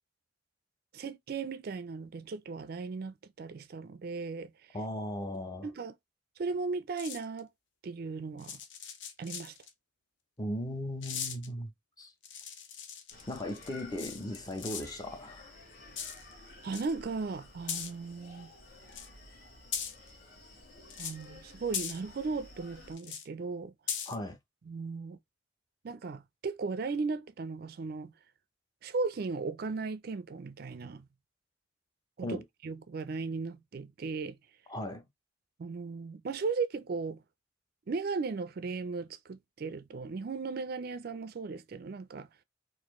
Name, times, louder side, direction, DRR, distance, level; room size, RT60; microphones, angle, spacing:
voice 1, 0.9-4.5 5.6-5.9 6.4-7.5 7.8-8.6 9.2-9.5 16.6-18.5 21.0-23.7 24.7-25.2 25.8-28.1 28.8-31.0 32.2-34.4 35.6-37.2 37.9-42.3, right 4 dB, 50° right, 0.4 m, -36 dB
voice 2, 4.7-5.7 10.4-11.7 12.0-12.1 13.3-15.5 24.1-24.4 32.2-32.4 34.7-35.0, left 1 dB, 20° left, 0.6 m, -37 dB
sound 1, 7.0-7.4 8.4-9.7 11.0-11.5 12.2-15.0 16.0-16.3 16.6-16.9 17.7-17.9 18.9-19.1 19.7-20.1 20.9-21.2 21.7-22.0 23.0-23.3 23.9-24.2, left 7 dB, 65° left, 0.7 m, -39 dB
Screaming, 13.1-22.9, left 2 dB, 50° left, 1.6 m, -53 dB
4.1 x 2.5 x 3.0 m
head